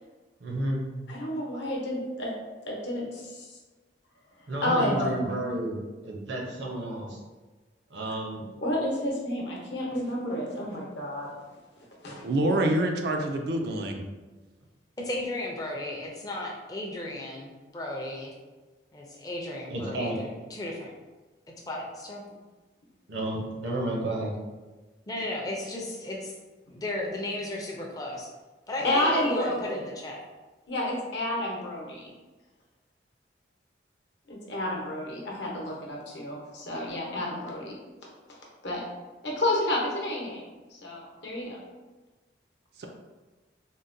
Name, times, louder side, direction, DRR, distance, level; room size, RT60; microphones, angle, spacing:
voice 1, 0.4-0.8 4.5-7.2 7.9-8.4 19.7-20.2 23.1-24.3, right 1 dB, 75° right, -1 dB, 0.7 m, -31 dB
voice 2, 1.1-2.3 2.7-3.5 4.6-5.1 8.6-11.3 12.0-12.5 28.8-29.8 30.7-32.1 34.3-37.7 38.6-38.8 39.2-40.4 40.7-41.6, left 1 dB, 70° left, -3 dB, 0.8 m, -30 dB
voice 3, 12.2-14.0 42.8-42.9, right 1 dB, 60° right, 3 dB, 0.3 m, -26 dB
voice 4, 15.0-18.3 18.9-20.9 21.7-22.2 25.1-26.3 26.7-28.3 28.7-30.2, left 1 dB, 20° left, -2 dB, 0.4 m, -35 dB
3.7 x 2.1 x 2.6 m, 1.2 s
head